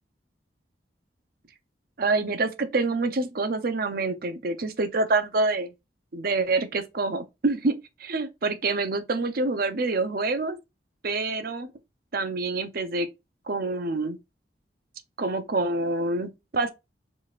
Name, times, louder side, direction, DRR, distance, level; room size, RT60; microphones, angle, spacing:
voice 1, 2.0-5.7 6.1-10.6 11.0-11.7 12.1-13.1 13.5-14.2 15.2-16.7, right 3 dB, 55° right, 0.7 m, -26 dB
4.8 x 4.0 x 2.4 m
head